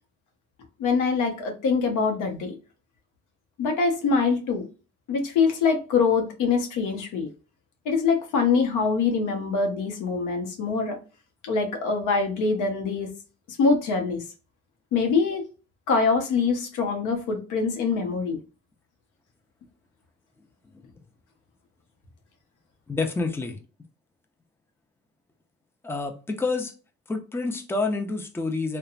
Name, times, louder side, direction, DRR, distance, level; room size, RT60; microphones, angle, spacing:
voice 1, 0.8-2.6 3.6-4.7 5.1-7.3 7.8-11.0 11.4-13.1 13.5-14.2 14.9-15.5 15.9-18.4, left 4 dB, 85° left, 0.8 m, -24 dB
voice 2, 22.9-23.6 25.8-26.7 27.1-28.8, left 3 dB, 10° left, 0.5 m, -28 dB
3.0 x 2.2 x 2.4 m
cardioid pair, 90°, 30 cm